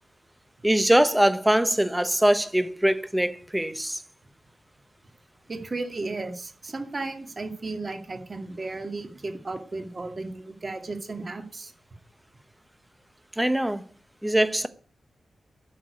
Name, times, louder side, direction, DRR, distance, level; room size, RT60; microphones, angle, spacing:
voice 1, 0.6-4.0 13.4-13.8 14.2-14.7, right 1 dB, 5° right, 1.0 m, -22 dB
voice 2, 5.5-11.7, right 3 dB, 35° right, 2.3 m, -34 dB
12.0 x 6.8 x 9.6 m
wide cardioid pair, 120°, 0 cm